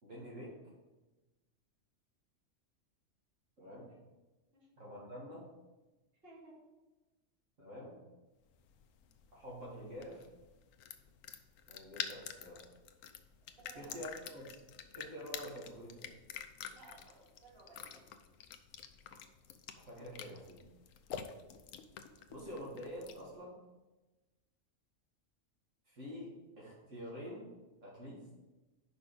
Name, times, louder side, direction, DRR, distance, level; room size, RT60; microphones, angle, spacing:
voice 1, 0.0-0.5 3.6-3.9 4.8-5.5 7.6-8.0 9.3-10.3 11.7-12.6 13.7-14.6 14.9-16.2 19.8-20.6 22.3-23.5 25.9-26.3 26.6-27.5 27.8-28.2, equal, 70° right, -6 dB, 2.2 m, -47 dB
sound 1, 8.5-23.3, left 8 dB, 85° left, 1.0 m, -48 dB
voice 2, 13.6-14.0 16.7-18.1, right 3 dB, 45° right, -5 dB, 2.3 m, -57 dB
5.3 x 5.3 x 6.6 m, 1.1 s
omnidirectional pair, 1.3 m